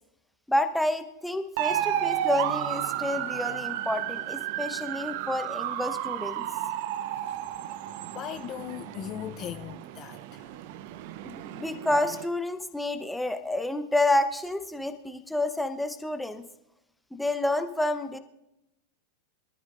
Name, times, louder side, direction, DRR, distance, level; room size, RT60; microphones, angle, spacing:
voice 1, 0.5-6.5 11.2-16.5 17.1-18.2, left 1 dB, 5° left, 1.0 m, -29 dB
sound 1, 1.6-12.3, right 12 dB, 50° right, 0.6 m, -32 dB
voice 2, 8.1-10.5, left 11 dB, 30° left, 0.4 m, -38 dB
24.0 x 13.5 x 2.6 m
figure-of-eight pair, 90°, 0 cm